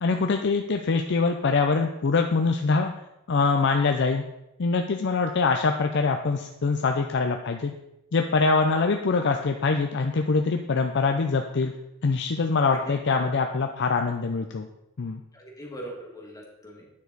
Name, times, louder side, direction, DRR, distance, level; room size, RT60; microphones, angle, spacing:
voice 1, 0.0-2.9 3.3-4.2 4.6-7.7 8.1-11.7 12.0-14.7 15.0-15.2, left 4 dB, 55° left, 4 dB, 0.5 m, -24 dB
voice 2, 12.6-13.3 15.3-16.9, equal, 15° left, -1 dB, 1.7 m, -41 dB
9.6 x 6.3 x 4.0 m, 0.89 s
head